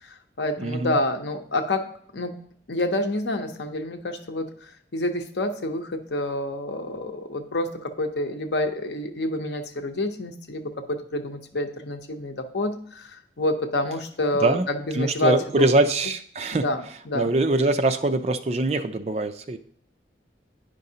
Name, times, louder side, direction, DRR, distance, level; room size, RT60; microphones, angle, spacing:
voice 1, 0.0-2.4 2.7-15.9 16.6-17.3, left 1 dB, 80° left, 6 dB, 0.8 m, -28 dB
voice 2, 0.6-1.0 14.4-14.7 14.9-16.6 17.1-19.6, right 2 dB, 35° right, 8 dB, 0.4 m, -23 dB
9.6 x 5.3 x 2.8 m, 0.62 s
head